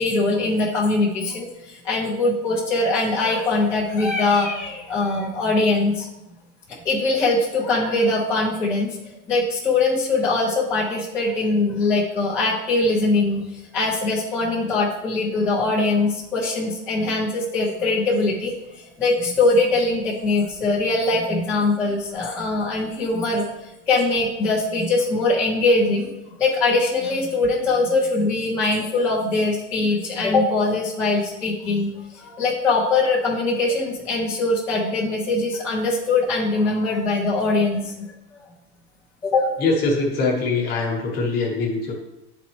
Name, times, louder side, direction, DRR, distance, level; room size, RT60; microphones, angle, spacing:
voice 1, 0.0-6.1 6.8-8.9 9.3-13.4 13.7-18.5 19.0-23.5 23.9-26.1 26.4-38.1 38.3-38.4 39.2-39.5, left 3 dB, 10° left, -9 dB, 0.4 m, -22 dB
voice 2, 39.6-41.9, left 3 dB, 25° left, 0 dB, 1.1 m, -22 dB
9.9 x 4.1 x 3.0 m, 0.93 s
supercardioid pair, 180°, 37 cm